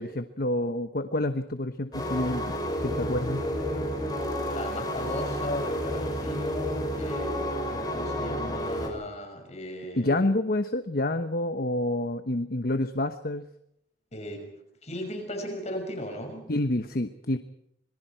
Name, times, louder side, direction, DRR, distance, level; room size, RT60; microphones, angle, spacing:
voice 1, 0.0-2.5 2.8-3.4 10.0-13.5 16.5-17.4, left 1 dB, 55° left, 9 dB, 1.1 m, -28 dB
sound 1, 1.9-8.9, equal, 20° left, 5.8 m, -30 dB
voice 2, 4.5-10.3 14.1-14.5 14.8-16.4, left 1 dB, 40° left, 3 dB, 6.0 m, -36 dB
26.5 x 22.5 x 4.6 m, 0.75 s
head